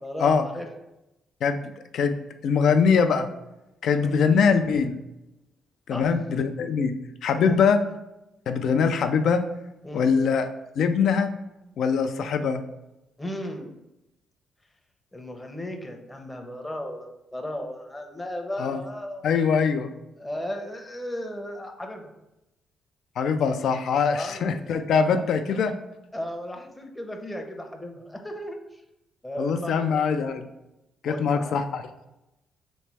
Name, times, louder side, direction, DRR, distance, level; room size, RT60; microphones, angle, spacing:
voice 1, 0.0-0.7 3.9-4.2 5.9-6.2 7.3-7.6 9.8-10.1 13.2-13.8 15.1-19.3 19.6-19.8 20.2-22.1 24.1-25.6 26.1-28.8 29.2-29.8 31.1-31.6, left 1 dB, 10° left, 3 dB, 0.6 m, -36 dB
voice 2, 2.4-3.3 3.8-5.0 5.9-6.9 7.2-7.8 8.5-9.4 9.9-10.5 10.8-11.3 11.8-12.6 18.6-18.8 19.2-19.9 23.2-25.7 29.4-30.4 31.0-31.8, left 6 dB, 70° left, 8 dB, 0.4 m, -22 dB
3.3 x 3.1 x 4.6 m, 0.93 s
cardioid pair, 90°, 0 cm